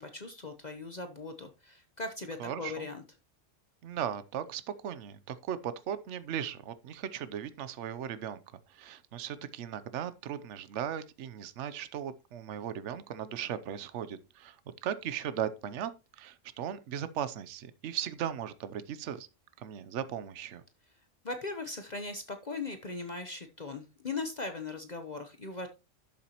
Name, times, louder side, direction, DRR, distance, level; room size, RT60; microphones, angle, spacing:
voice 1, 0.0-3.0 21.2-25.7, left 3 dB, 35° left, 1.0 m, -39 dB
voice 2, 2.4-2.9 3.8-8.4 8.7-14.6 14.8-15.9 16.2-19.3 19.6-20.6, right 9 dB, 70° right, 1.0 m, -37 dB
12.0 x 7.1 x 2.9 m
omnidirectional pair, 1.3 m